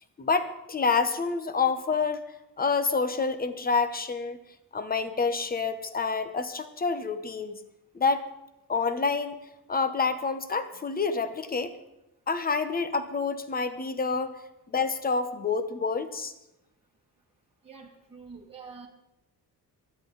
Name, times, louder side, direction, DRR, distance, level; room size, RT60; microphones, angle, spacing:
voice 1, 0.2-2.3 2.6-4.4 4.7-7.6 7.9-8.2 8.7-9.4 9.7-11.8 12.3-14.4 14.7-16.3, left 4 dB, 25° left, 11 dB, 0.9 m, -28 dB
voice 2, 17.6-18.9, right 5 dB, 15° right, -3 dB, 2.0 m, -46 dB
19.0 x 13.0 x 4.0 m, 0.90 s
wide cardioid pair, 170°, 39 cm